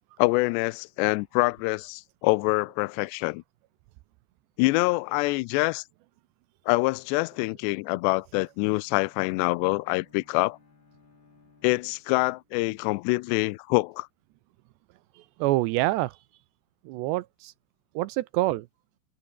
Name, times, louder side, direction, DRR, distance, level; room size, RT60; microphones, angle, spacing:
voice 1, 0.2-3.4 4.6-5.8 6.7-10.6 11.6-14.1, left 23 dB, 80° left, 2.5 m, -25 dB
Bowed string instrument, 8.0-12.7, left 4 dB, 30° left, 3.2 m, -61 dB
voice 2, 15.1-16.2 16.8-17.5 17.9-18.7, right 17 dB, 80° right, 2.7 m, -27 dB
omnidirectional pair, 5.4 m